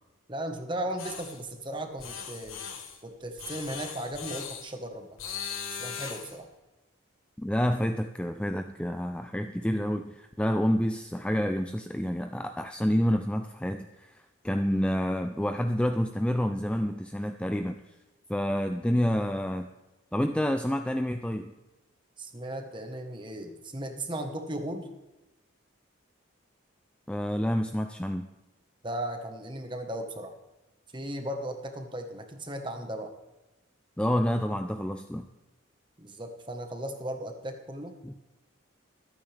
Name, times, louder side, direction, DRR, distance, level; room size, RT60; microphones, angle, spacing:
voice 1, 0.3-2.6 3.0-5.1 5.8-6.5 22.2-24.9 28.8-30.4 30.9-33.1 36.0-37.9, right 1 dB, 25° right, 5 dB, 1.3 m, -36 dB
sound 1, 1.0-1.4 2.0-3.0 3.4-4.7 5.2-6.4, left 7 dB, 90° left, 1.6 m, -39 dB
voice 2, 7.4-17.8 18.3-19.7 20.1-21.5 27.1-28.3 34.0-35.3 38.0-38.1, equal, 5° left, 7 dB, 0.4 m, -28 dB
24.5 x 9.0 x 3.4 m, 1.0 s
head